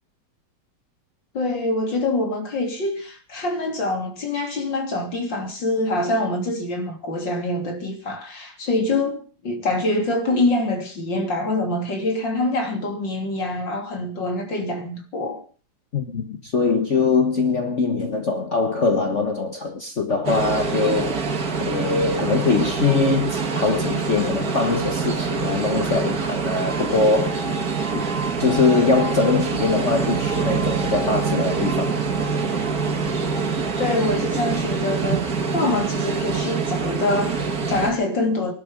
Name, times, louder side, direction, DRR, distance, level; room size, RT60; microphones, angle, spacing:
voice 1, 1.3-15.4 33.8-35.2 35.5-38.5, left 2 dB, 75° left, 3.9 m, -25 dB
voice 2, 15.9-21.3 21.6-27.5 27.9-32.0, left 4 dB, 40° left, 1.6 m, -22 dB
sound 1, 20.2-37.9, right 5 dB, 55° right, 2.3 m, -25 dB
19.0 x 12.5 x 5.2 m
omnidirectional pair, 2.0 m